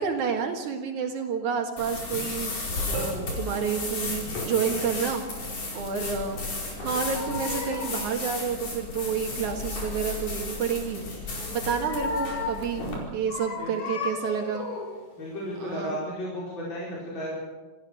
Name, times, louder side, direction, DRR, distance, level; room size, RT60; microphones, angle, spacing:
voice 1, 0.0-2.5 2.8-6.4 6.8-11.0 11.3-12.8 13.1-14.7 15.6-16.0, right 6 dB, 75° right, 3 dB, 3.0 m, -29 dB
sound 1, 1.8-13.0, left 2 dB, 85° left, 6.4 m, -33 dB
sound 2, 6.5-8.1 11.3-12.8 13.3-15.1 15.6-15.8, left 4 dB, 65° left, 3.9 m, -35 dB
voice 2, 15.2-17.3, equal, 35° left, -5 dB, 5.7 m, -34 dB
27.0 x 15.5 x 6.7 m, 1.3 s
omnidirectional pair, 3.6 m